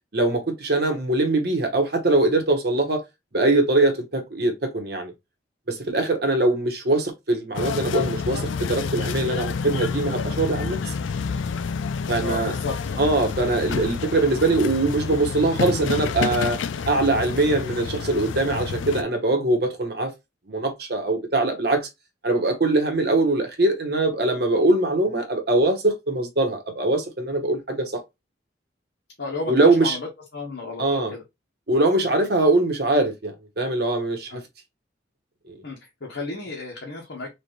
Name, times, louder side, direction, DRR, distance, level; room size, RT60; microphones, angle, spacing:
voice 1, 0.1-3.0 3.3-5.1 5.7-10.9 12.1-12.5 13.0-16.6 16.9-20.1 20.5-21.9 22.2-28.0 29.5-30.0 30.8-31.1 31.7-34.4 35.5-35.6, right 2 dB, 55° right, 1.2 m, -22 dB
sound 1, 7.6-19.0, left 5 dB, 90° left, 0.4 m, -29 dB
voice 2, 12.2-13.0 29.2-30.1 30.3-31.2 34.3-34.4 35.6-37.3, left 3 dB, 70° left, 1.2 m, -33 dB
4.3 x 2.5 x 3.2 m
head